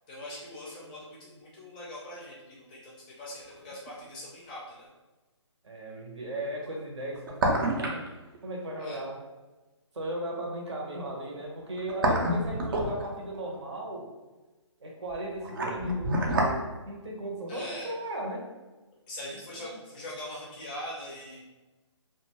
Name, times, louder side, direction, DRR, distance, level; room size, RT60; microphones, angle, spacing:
voice 1, 0.1-4.9 8.8-9.0 17.5-17.9 19.1-21.4, left 1 dB, 15° left, -5 dB, 0.4 m, -42 dB
sound 1, 3.9-4.0 7.0-8.1 8.3-8.4 11.6-13.4 15.1-16.6 16.9-17.0, right 1 dB, 45° right, 0.5 m, -28 dB
voice 2, 5.6-8.0 8.4-9.2 9.9-14.1 14.8-18.5 19.6-19.8, right 1 dB, 65° right, 0 dB, 0.8 m, -37 dB
2.5 x 2.2 x 2.9 m, 1.2 s
hypercardioid pair, 155°, 16 cm